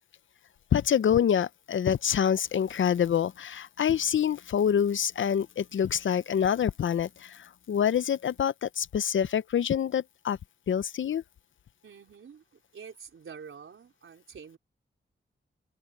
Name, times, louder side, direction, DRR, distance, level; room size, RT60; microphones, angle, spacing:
voice 1, 0.7-10.4 10.7-11.2, left 8 dB, 70° left, 0.5 m, -26 dB
voice 2, 11.8-14.6, right 6 dB, 80° right, 4.6 m, -47 dB
wide cardioid pair, 140°, 21 cm